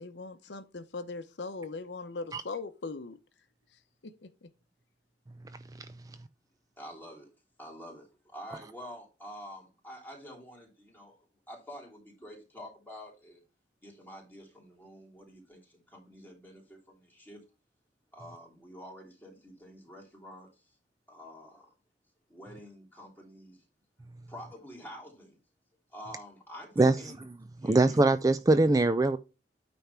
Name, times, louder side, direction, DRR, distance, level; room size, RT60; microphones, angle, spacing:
voice 1, 0.0-3.2 4.0-4.5, left 3 dB, 80° left, 0.8 m, -40 dB
voice 2, 6.8-7.3 7.6-13.4 13.8-17.4 18.1-20.7 21.1-21.7 22.3-23.6 24.3-25.4 25.9-27.2 27.6-28.0, equal, 10° left, 3.1 m, -48 dB
voice 3, 27.6-29.2, right 2 dB, 20° right, 0.3 m, -22 dB
9.3 x 3.5 x 5.7 m
head